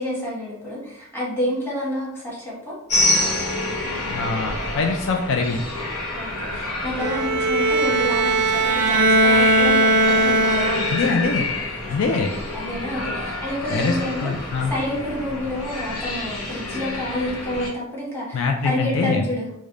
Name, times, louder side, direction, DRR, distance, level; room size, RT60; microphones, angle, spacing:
voice 1, 0.0-2.7 6.1-11.3 12.5-19.5, left 1 dB, 10° left, -6 dB, 1.2 m, -29 dB
sound 1, 2.9-17.7, left 2 dB, 90° left, 1.1 m, -28 dB
voice 2, 4.1-5.6 10.9-11.4 11.9-12.3 13.7-13.9 14.2-14.7 18.3-19.2, left 4 dB, 60° left, 3 dB, 0.3 m, -23 dB
Bowed string instrument, 7.0-11.1, right 2 dB, 55° right, 0.4 m, -19 dB
3.3 x 2.1 x 3.6 m, 0.77 s
head